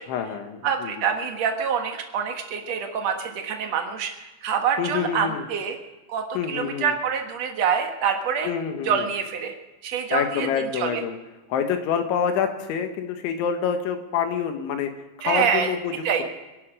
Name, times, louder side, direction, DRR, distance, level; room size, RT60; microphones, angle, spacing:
voice 1, 0.1-0.9 4.8-5.5 6.4-6.9 8.4-9.1 10.1-11.2 11.5-14.9 15.2-15.9, left 7 dB, 85° left, 6 dB, 3.8 m, -27 dB
voice 2, 0.6-4.1 4.4-5.8 6.1-8.5 8.8-9.5 9.8-10.5 10.7-11.0 15.2-15.8 16.0-16.2, right 7 dB, 65° right, 4 dB, 1.6 m, -26 dB
26.0 x 11.0 x 5.0 m, 1.1 s
omnidirectional pair, 5.3 m